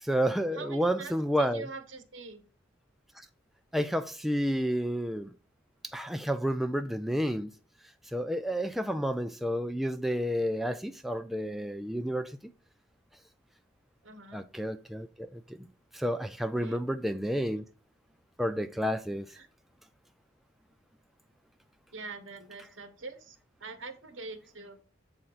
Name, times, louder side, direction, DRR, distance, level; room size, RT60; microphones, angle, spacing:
voice 1, 0.0-1.6 3.2-3.3 3.7-5.3 5.9-7.5 8.1-12.3 14.3-15.6 15.9-17.6 18.4-19.3, equal, ahead, 0.3 m, -30 dB
voice 2, 0.5-2.4 14.0-14.5 16.6-16.8 19.3-19.5 21.9-24.8, right 3 dB, 75° right, 1.3 m, -44 dB
7.6 x 4.3 x 4.0 m
head